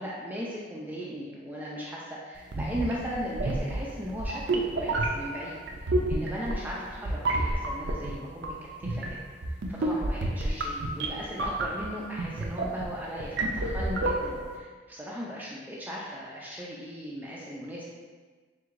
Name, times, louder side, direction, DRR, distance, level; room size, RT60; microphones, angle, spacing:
voice 1, 0.0-8.5 8.8-9.2 9.7-17.9, equal, 10° right, -5 dB, 0.5 m, -37 dB
sound 1, 2.4-14.6, right 2 dB, 65° right, 0.5 m, -30 dB
4.7 x 3.5 x 2.5 m, 1.4 s
head